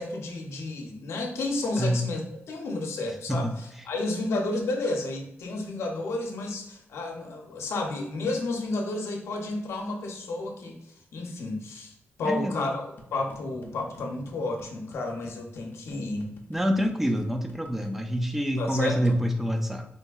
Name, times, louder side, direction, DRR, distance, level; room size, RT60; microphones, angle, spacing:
voice 1, 0.0-2.2 2.5-10.8 11.1-11.9 12.2-16.3 18.6-19.2, left 2 dB, 85° left, 1 dB, 0.7 m, -31 dB
voice 2, 12.2-12.7 16.5-19.9, equal, 5° right, 5 dB, 0.4 m, -26 dB
sound 1, 13.0-18.1, left 1 dB, 50° left, 0.5 m, -50 dB
4.0 x 2.6 x 2.3 m, 0.82 s
wide cardioid pair, 125°, 4 cm